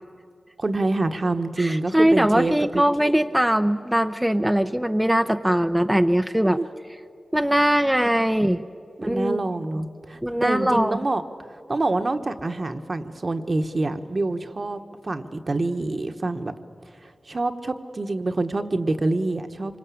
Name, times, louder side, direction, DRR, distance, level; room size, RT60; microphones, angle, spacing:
voice 1, 0.6-3.1 6.4-6.7 8.0-8.1 9.0-11.2 11.5-16.5 17.0-19.8, right 2 dB, 45° right, 8 dB, 1.2 m, -26 dB
voice 2, 1.6-6.6 7.3-8.6 9.0-9.4 10.2-11.0, equal, 5° right, 7 dB, 0.7 m, -21 dB
26.0 x 24.0 x 8.5 m, 2.3 s
wide cardioid pair, 75°, 0 cm